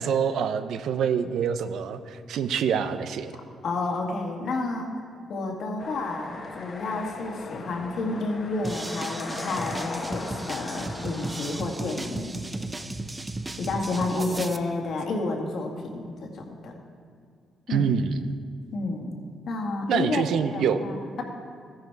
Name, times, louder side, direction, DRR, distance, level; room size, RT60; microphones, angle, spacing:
voice 1, 0.0-3.3 14.2-14.4 17.7-18.2 19.9-20.8, right 7 dB, 75° right, 11 dB, 0.6 m, -26 dB
voice 2, 3.6-5.0 5.3-12.4 13.6-16.7 17.7-17.9 18.7-19.2 19.5-20.3 20.5-21.2, left 3 dB, 65° left, 1 dB, 1.9 m, -30 dB
sound 1, 5.8-11.6, left 4 dB, 50° left, 1.2 m, -39 dB
sound 2, 8.6-14.6, right 2 dB, 20° right, 0.6 m, -35 dB
14.0 x 10.5 x 4.7 m, 2.3 s
cardioid pair, 90°, 0 cm